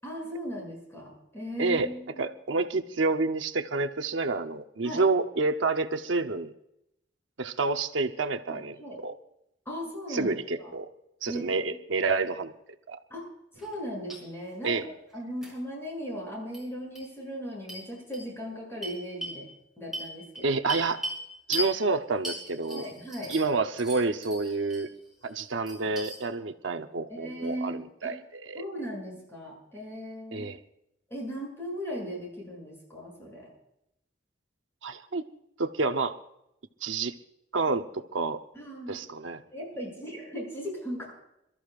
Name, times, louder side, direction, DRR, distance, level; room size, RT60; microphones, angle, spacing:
voice 1, 0.0-2.3 4.8-5.0 8.5-9.0 9.7-10.7 11.3-11.8 13.1-13.2 13.5-14.8 15.1-19.5 19.8-20.5 22.7-23.3 27.1-28.2 28.5-30.5 31.1-33.5 38.5-39.0 39.5-41.1, equal, 15° left, -2 dB, 7.3 m, -38 dB
voice 2, 2.2-6.5 7.4-9.1 10.1-10.9 11.2-12.5 12.9-13.0 14.6-14.8 20.4-21.0 21.5-22.8 23.3-24.9 25.2-28.6 30.3-30.6 34.8-35.2 35.6-36.2 36.8-37.1 37.5-38.4 38.9-39.4, right 3 dB, 85° right, 7 dB, 0.8 m, -29 dB
sound 1, 13.5-13.8 14.1-14.2 15.4-15.5 16.5-16.6 16.9-17.0 17.7-17.8 18.1-18.2 18.8-19.4 19.9-21.2 21.5-21.7 22.2-23.5 23.8-24.8 25.2-26.2, equal, ahead, 5.6 m, -37 dB
27.5 x 13.5 x 2.5 m, 0.82 s
head